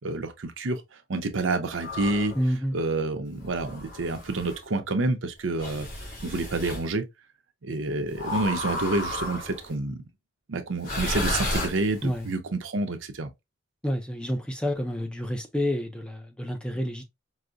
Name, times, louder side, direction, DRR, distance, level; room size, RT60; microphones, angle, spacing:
voice 1, 0.0-0.8 1.1-2.4 2.7-5.9 6.2-7.0 7.6-10.0 10.5-13.3, right 2 dB, 75° right, 0.7 m, -28 dB
sound 1, 1.8-2.4 3.4-4.6 5.6-6.8 8.2-9.7 10.8-12.2, left 2 dB, 45° left, 2.3 m, -33 dB
voice 2, 2.4-2.8 12.0-12.3 13.8-17.0, equal, 5° left, 0.4 m, -29 dB
4.7 x 2.0 x 2.5 m
head